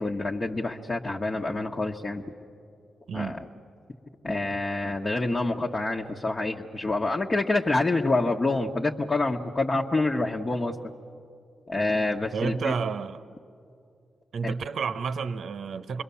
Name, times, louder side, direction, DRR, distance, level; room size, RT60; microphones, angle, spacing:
voice 1, 0.0-2.2 3.1-3.4 4.2-10.7 11.7-12.7 14.4-14.5, left 2 dB, 35° left, -1 dB, 1.2 m, -27 dB
voice 2, 12.3-13.2 14.3-16.0, right 5 dB, 70° right, 11 dB, 0.8 m, -30 dB
27.5 x 22.0 x 7.1 m, 2.5 s
supercardioid pair, 50°, 0 cm